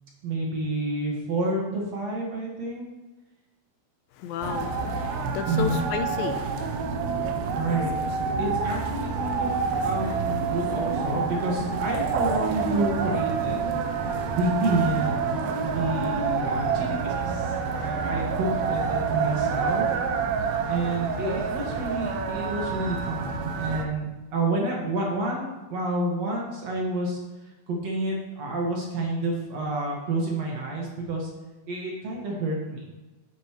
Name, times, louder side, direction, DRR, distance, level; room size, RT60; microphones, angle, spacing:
voice 1, 0.2-2.9 5.5-5.8 7.5-7.9 8.4-9.5 9.8-13.8 14.3-15.1 15.6-19.9 20.7-27.2 27.7-31.3 31.7-32.8, right 2 dB, 55° right, -2 dB, 2.4 m, -29 dB
voice 2, 4.2-6.8, left 9 dB, 85° left, 7 dB, 2.4 m, -33 dB
sound 1, 4.4-23.8, right 5 dB, 90° right, 2.7 m, -28 dB
sound 2, 9.0-23.3, left 2 dB, 55° left, 2.8 m, -49 dB
10.0 x 9.4 x 3.1 m, 1.1 s
omnidirectional pair, 4.2 m